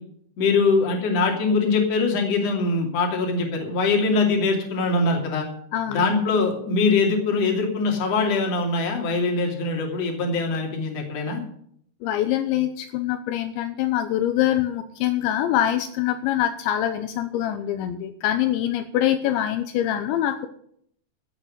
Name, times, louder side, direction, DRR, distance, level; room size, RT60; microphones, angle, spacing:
voice 1, 0.4-5.5 5.9-11.4, left 3 dB, 40° left, 2 dB, 3.2 m, -22 dB
voice 2, 5.7-6.2 12.0-20.5, left 12 dB, 80° left, 9 dB, 3.0 m, -24 dB
15.0 x 8.1 x 6.5 m, 0.66 s
omnidirectional pair, 5.4 m